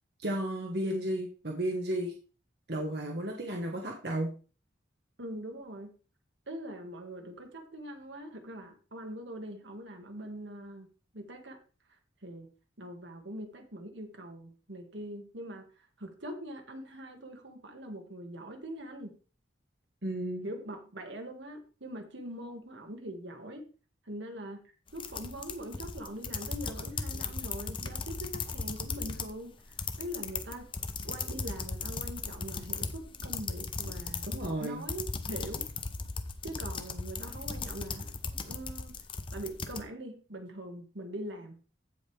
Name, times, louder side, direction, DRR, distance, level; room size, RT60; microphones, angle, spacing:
voice 1, 0.2-2.1 2.7-4.3 20.0-20.5 34.3-34.8, right 1 dB, 55° right, 0 dB, 1.4 m, -33 dB
voice 2, 5.2-5.9 6.5-10.9 11.1-11.6 12.2-12.5 12.8-19.1 20.4-23.7 24.1-24.6 24.9-30.7 31.0-34.3 34.6-35.7 36.4-38.1 38.4-39.0 39.3-41.6, right 1 dB, 70° right, 4 dB, 1.8 m, -42 dB
sound 1, 24.9-29.4 29.6-39.8, left 4 dB, 25° left, 0.7 m, -37 dB
15.0 x 5.2 x 3.4 m, 0.35 s
head